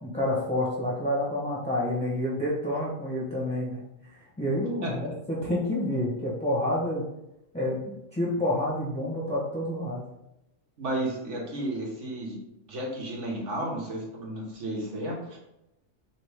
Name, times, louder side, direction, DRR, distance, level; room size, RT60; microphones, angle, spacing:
voice 1, 0.0-3.8 4.4-7.0 7.5-7.8 8.1-10.0, left 1 dB, 5° left, -6 dB, 0.8 m, -28 dB
voice 2, 10.8-12.4 12.6-15.4, right 1 dB, 70° right, -3 dB, 1.4 m, -33 dB
3.5 x 3.5 x 3.4 m, 0.88 s
omnidirectional pair, 1.3 m